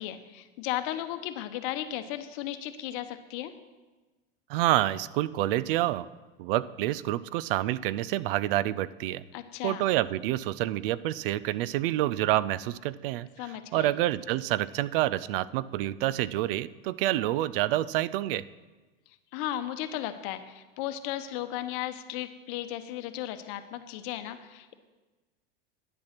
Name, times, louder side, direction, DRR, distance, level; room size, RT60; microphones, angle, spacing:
voice 1, 0.0-3.5 9.3-9.8 13.4-13.9 19.3-24.7, left 12 dB, 60° left, 10 dB, 1.0 m, -35 dB
voice 2, 4.5-6.1 6.4-9.2 9.6-18.4, right 15 dB, 70° right, 18 dB, 0.5 m, -28 dB
10.5 x 7.6 x 5.9 m, 1.2 s
hypercardioid pair, 110°, 29 cm